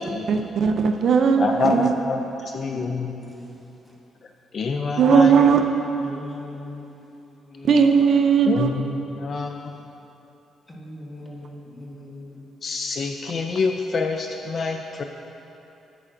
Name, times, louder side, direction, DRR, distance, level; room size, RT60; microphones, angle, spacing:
voice 1, 0.3-1.9 5.0-5.6 7.7-8.7, right 6 dB, 50° right, 5 dB, 0.4 m, -17 dB
voice 2, 1.4-3.1 4.5-5.5 8.5-9.9 12.6-15.0, left 4 dB, 40° left, 4 dB, 0.3 m, -26 dB
voice 3, 2.1-3.6 6.0-6.9 7.2-7.9 10.7-12.4, left 1 dB, 15° left, -4 dB, 1.3 m, -40 dB
11.0 x 8.3 x 2.5 m, 3.0 s
cardioid pair, 155°, 0 cm